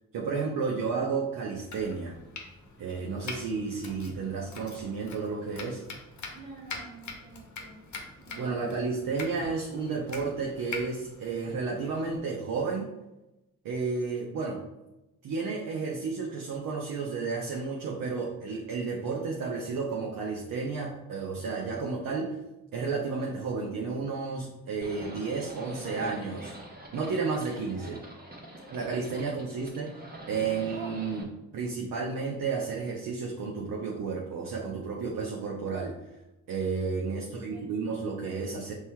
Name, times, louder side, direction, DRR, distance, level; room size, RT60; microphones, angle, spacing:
voice 1, 0.1-2.2 2.8-5.8 8.4-12.9 13.6-14.6 15.2-22.4 22.7-26.6 26.9-28.0 28.7-29.9 30.3-36.0 36.5-38.7, right 4 dB, 65° right, -1 dB, 0.7 m, -32 dB
Domestic sounds home sounds, 1.5-12.2, left 3 dB, 50° left, 0.9 m, -44 dB
voice 2, 6.3-7.8 8.2-8.6 37.2-37.7, right 3 dB, 90° right, -6 dB, 1.3 m, -49 dB
Livestock farm animals working animals, 24.8-31.2, right 1 dB, 25° right, 1.1 m, -44 dB
5.3 x 3.1 x 2.2 m, 0.96 s
hypercardioid pair, 40°, 37 cm